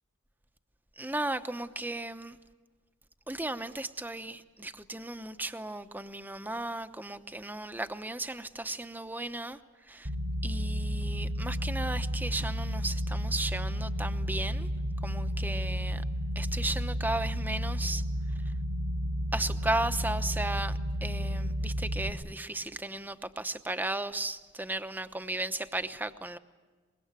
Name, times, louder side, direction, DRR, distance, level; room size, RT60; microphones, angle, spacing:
voice 1, 1.0-2.4 3.3-9.6 9.9-10.1 10.4-14.7 15.0-16.0 16.3-18.0 19.3-26.4, right 2 dB, 10° right, 10 dB, 0.9 m, -35 dB
sound 1, 10.0-22.1, equal, 80° right, 3.6 m, -32 dB
24.5 x 22.0 x 9.0 m, 1.4 s
head